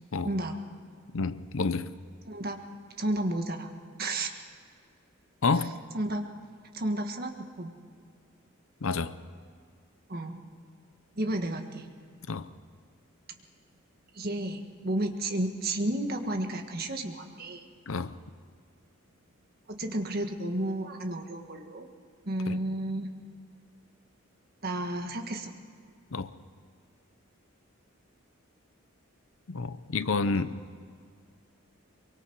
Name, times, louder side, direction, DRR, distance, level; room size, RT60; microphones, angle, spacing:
voice 1, 1.1-1.9 5.4-5.7 8.8-9.2 12.3-12.5 17.9-18.1 22.5-22.6 26.1-26.3 29.5-30.5, left 4 dB, 70° left, 13 dB, 0.7 m, -29 dB
voice 2, 2.3-2.6 3.0-3.7 4.0-4.3 5.5-5.6 5.9-6.3 6.7-7.7 10.1-10.6 11.2-11.9 14.1-17.6 19.7-21.9 22.2-23.1 24.6-25.5 30.2-30.4, right 1 dB, 45° right, 5 dB, 1.6 m, -32 dB
24.0 x 23.5 x 4.7 m, 2.1 s
head